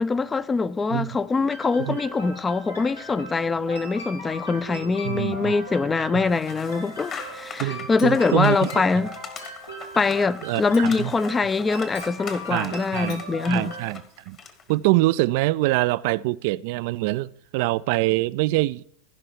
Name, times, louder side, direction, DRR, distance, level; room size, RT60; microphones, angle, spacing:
voice 1, 0.0-9.1 10.0-13.7, left 4 dB, 20° left, 0.5 m, -23 dB
sound 1, 1.5-13.8, equal, 90° left, 2.7 m, -39 dB
voice 2, 5.0-5.5 6.1-6.2 7.6-8.8 10.4-11.1 12.5-13.2 13.5-14.0 14.3-14.4 14.7-18.8, right 19 dB, 60° right, 0.3 m, -24 dB
sound 2, 6.3-14.8, left 5 dB, 35° left, 1.5 m, -41 dB
Chink clink, 8.0-8.5 9.4-9.8 10.7-11.2 11.9-12.2 13.1-13.3, left 5 dB, 55° left, 1.3 m, -46 dB
15.0 x 5.6 x 4.6 m
figure-of-eight pair, 85°, 0 cm